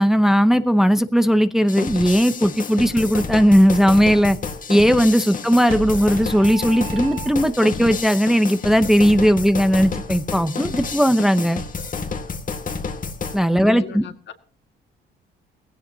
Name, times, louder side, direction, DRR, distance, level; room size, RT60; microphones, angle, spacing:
voice 1, 0.0-4.4 4.7-11.6 13.3-14.0, equal, ahead, 10 dB, 0.8 m, -17 dB
sound 1, 1.7-13.4, left 5 dB, 40° left, 1.6 m, -30 dB
sound 2, 5.7-7.8, right 10 dB, 85° right, 0.9 m, -35 dB
voice 2, 12.5-13.1 13.6-14.3, left 5 dB, 65° left, 7 dB, 1.9 m, -40 dB
18.5 x 16.5 x 2.8 m, 0.41 s
cardioid pair, 90°, 20 cm